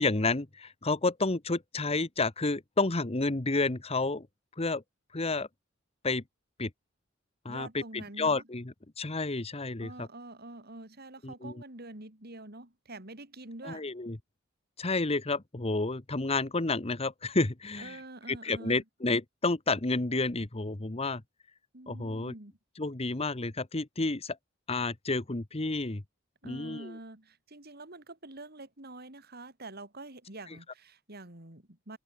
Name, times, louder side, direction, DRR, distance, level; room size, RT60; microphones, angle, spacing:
voice 1, 0.0-4.3 4.6-4.8 5.1-5.5 6.0-6.2 6.6-6.7 7.4-10.1 11.2-11.6 13.6-14.2 14.8-18.0 18.3-21.2 21.9-22.3 22.8-24.4 24.7-26.0 26.4-27.0, left 3 dB, 30° left, 1.2 m, -30 dB
voice 2, 7.5-8.4 9.8-13.9 17.8-18.8 21.7-22.5 26.4-32.0, right 2 dB, 55° right, 4.2 m, -46 dB
open air
head